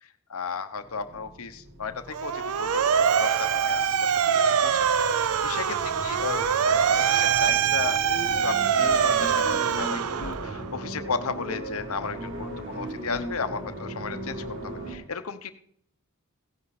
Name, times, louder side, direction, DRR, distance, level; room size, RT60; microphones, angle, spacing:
voice 1, 0.0-8.0 8.4-15.5, left 5 dB, 75° left, 9 dB, 1.0 m, -35 dB
sound 1, 0.8-15.0, right 1 dB, 60° right, 3.5 m, -38 dB
Motor vehicle (road) / Siren, 2.1-10.7, right 7 dB, 90° right, 0.5 m, -24 dB
16.5 x 10.5 x 4.2 m, 0.64 s
head